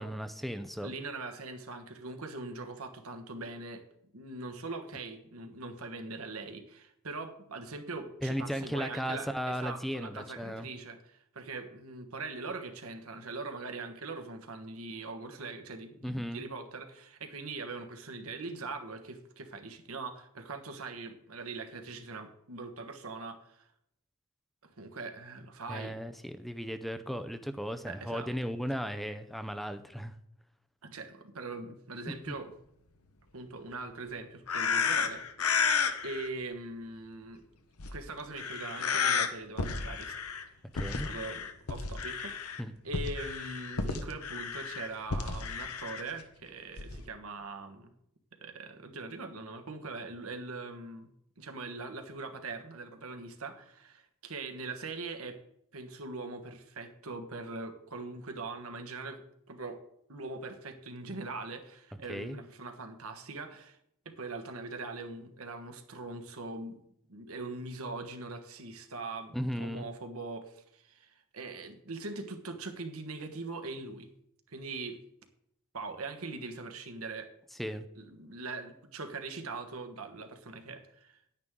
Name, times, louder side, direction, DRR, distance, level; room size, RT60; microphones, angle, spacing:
voice 1, 0.0-0.9 8.2-10.7 16.0-16.4 25.7-30.1 40.7-41.1 42.6-42.7 62.1-62.4 69.3-69.8 77.6-77.9, equal, ahead, 10 dB, 0.5 m, -36 dB
voice 2, 0.8-3.8 4.1-23.7 24.6-26.0 27.8-28.3 30.8-32.5 33.3-35.2 36.0-37.4 37.9-40.1 41.0-42.4 42.8-47.9 48.4-51.1 51.4-55.4 55.7-59.2 59.5-59.8 60.1-63.8 64.0-66.8 67.1-74.1 74.5-75.0 75.7-77.3 77.9-81.2, right 3 dB, 75° right, 6 dB, 1.4 m, -41 dB
sound 1, 34.5-36.3 37.8-38.0 38.4-39.3 39.6-40.4 40.8-42.6 42.9-46.0 46.8-47.0, left 5 dB, 80° left, 1.0 m, -32 dB
10.5 x 9.8 x 3.7 m, 0.74 s
head